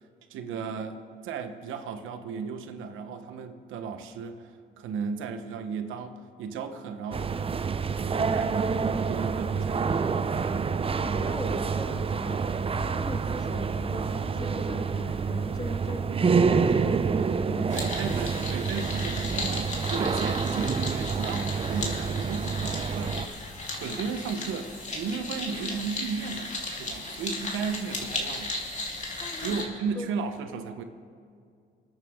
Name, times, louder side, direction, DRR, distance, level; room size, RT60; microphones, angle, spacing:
voice 1, 0.3-1.0 1.2-7.3 8.0-8.8 9.1-10.2 15.6-15.7 17.7-23.4 23.8-26.5 26.8-28.5 29.4-30.8, right 5 dB, 85° right, 1.1 m, -35 dB
sound 1, 7.1-23.3, right 5 dB, 30° right, 0.6 m, -28 dB
sound 2, 9.5-10.0 10.3-10.8 11.1-11.6 11.9-12.4 12.7-13.2 13.5-14.0 14.3-14.8, left 5 dB, 60° left, 1.2 m, -45 dB
voice 2, 10.9-17.9 29.2-29.6 30.0-30.2, left 2 dB, 20° left, 1.0 m, -40 dB
sound 3, 17.7-29.6, left 2 dB, 35° left, 2.9 m, -35 dB
27.5 x 9.4 x 3.7 m
cardioid pair, 90°, 20 cm